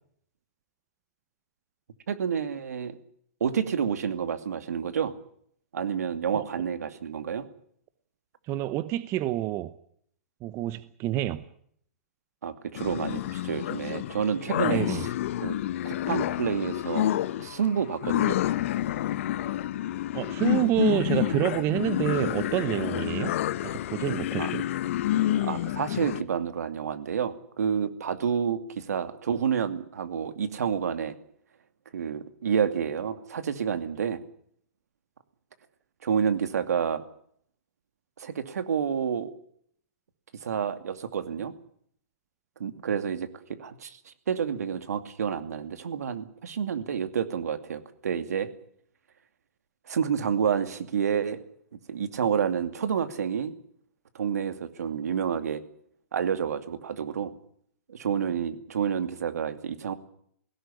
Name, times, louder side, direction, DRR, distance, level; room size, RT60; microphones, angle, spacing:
voice 1, 2.1-3.0 3.4-5.2 5.7-7.5 12.4-15.1 15.4-15.5 15.8-17.1 17.4-18.4 24.4-24.5 25.3-31.2 31.9-34.2 36.0-37.0 38.2-39.3 40.4-41.5 42.6-48.5 49.9-51.4 51.9-53.5 54.1-55.6 56.1-57.3 57.9-59.9, right 7 dB, 75° right, 2.6 m, -29 dB
voice 2, 8.5-9.7 10.4-11.5 14.6-15.0 20.1-23.4 23.6-24.7, right 14 dB, 30° right, 0.9 m, -28 dB
sound 1, 12.8-26.2, left 13 dB, 55° left, 0.9 m, -29 dB
20.0 x 17.0 x 10.0 m
hypercardioid pair, 135°, 9 cm